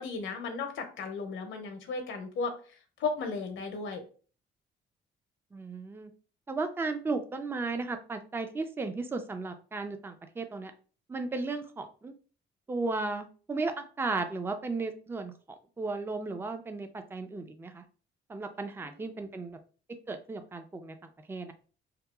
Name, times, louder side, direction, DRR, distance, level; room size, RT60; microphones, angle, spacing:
voice 1, 0.0-4.0 18.8-19.0, left 4 dB, 75° left, 6 dB, 0.7 m, -35 dB
voice 2, 5.5-6.1 6.5-10.7 11.1-12.1 12.7-15.3 15.8-17.8 18.3-19.6 20.1-21.0 21.3-21.5, right 3 dB, 10° right, 7 dB, 0.4 m, -35 dB
2.8 x 2.3 x 2.3 m, 0.38 s
cardioid pair, 90°, 20 cm